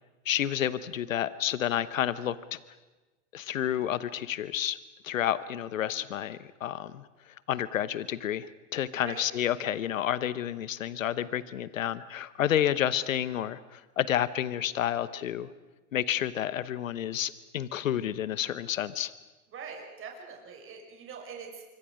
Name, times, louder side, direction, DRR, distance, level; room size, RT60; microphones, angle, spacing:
voice 1, 0.3-2.6 3.3-4.8 5.0-7.0 7.5-8.5 8.7-15.5 15.9-19.1, left 11 dB, 85° left, 17 dB, 1.0 m, -30 dB
voice 2, 19.5-21.6, right 6 dB, 35° right, 1 dB, 5.9 m, -43 dB
25.0 x 24.5 x 6.4 m, 1.2 s
hypercardioid pair, 100°, 38 cm